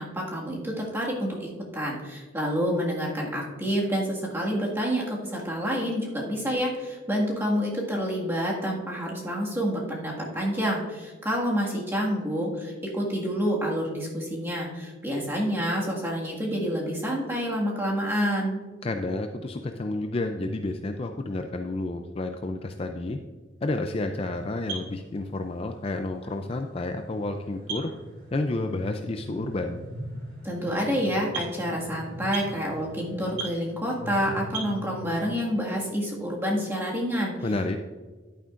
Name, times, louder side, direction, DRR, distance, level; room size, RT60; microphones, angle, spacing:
voice 1, 0.0-18.6 30.4-37.3, equal, 10° right, -3 dB, 1.8 m, -28 dB
voice 2, 18.8-23.2 23.6-27.9 28.3-29.8 37.4-37.8, left 2 dB, 30° left, 5 dB, 0.4 m, -30 dB
sound 1, 24.4-35.3, right 2 dB, 90° right, 2.4 m, -40 dB
11.0 x 8.9 x 2.5 m, 1.4 s
head